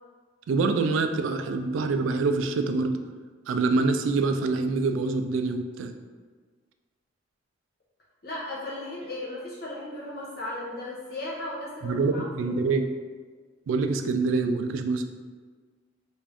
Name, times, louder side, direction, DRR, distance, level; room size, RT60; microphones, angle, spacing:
voice 1, 0.5-3.0 3.5-5.9 11.8-12.8 13.7-15.1, right 3 dB, 90° right, 7 dB, 0.3 m, -25 dB
voice 2, 8.2-12.7, left 1 dB, 50° left, -6 dB, 0.9 m, -36 dB
3.4 x 2.6 x 3.4 m, 1.5 s
head